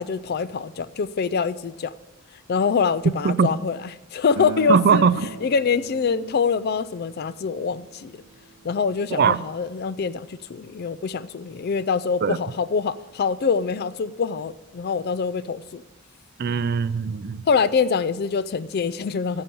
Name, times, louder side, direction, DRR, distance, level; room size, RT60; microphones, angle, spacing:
voice 1, 0.0-1.9 2.5-3.8 4.1-5.0 5.4-8.1 8.6-15.8 17.5-19.4, left 5 dB, 45° left, 17 dB, 0.4 m, -24 dB
Acoustic guitar, 4.4-9.6, right 2 dB, 85° right, 0.9 m, -39 dB
voice 2, 4.7-5.3 9.1-9.4 12.2-12.4 16.4-17.4, right 6 dB, 45° right, 16 dB, 0.4 m, -20 dB
8.7 x 7.0 x 7.5 m, 1.0 s
head